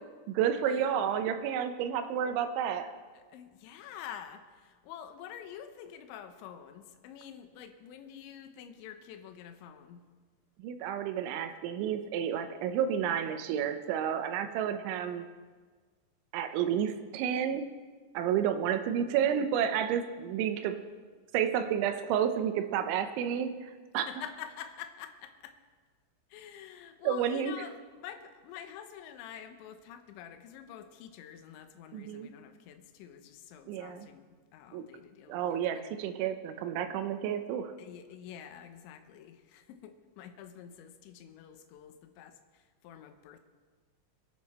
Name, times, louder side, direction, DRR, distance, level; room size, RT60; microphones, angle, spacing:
voice 1, 0.3-2.9 10.6-15.3 16.3-17.7 18.1-20.8 21.3-24.1 27.0-27.5 31.9-32.3 33.7-34.1 34.7-34.8 35.3-37.7, right 9 dB, 85° right, 9 dB, 3.2 m, -31 dB
voice 2, 3.1-10.0 23.9-25.5 26.3-35.8 37.8-43.4, left 9 dB, 80° left, 7 dB, 3.2 m, -47 dB
22.5 x 9.5 x 4.3 m, 1.5 s
omnidirectional pair, 5.3 m